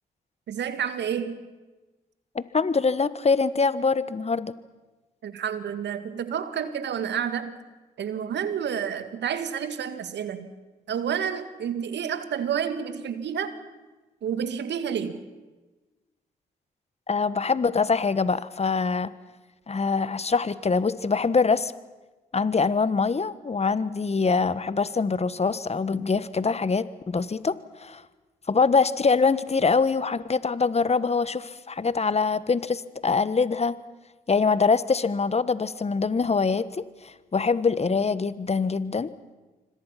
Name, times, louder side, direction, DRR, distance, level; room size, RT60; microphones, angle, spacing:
voice 1, 0.5-1.4 5.2-7.5 8.0-10.5 10.9-13.5 14.2-15.2, right 8 dB, 65° right, 11 dB, 2.0 m, -29 dB
voice 2, 2.3-4.5 17.1-19.1 19.7-21.7 22.3-28.0 28.5-33.8 34.3-39.1, left 4 dB, 35° left, 16 dB, 1.3 m, -24 dB
27.0 x 25.5 x 5.9 m, 1.2 s
hypercardioid pair, 40°, 19 cm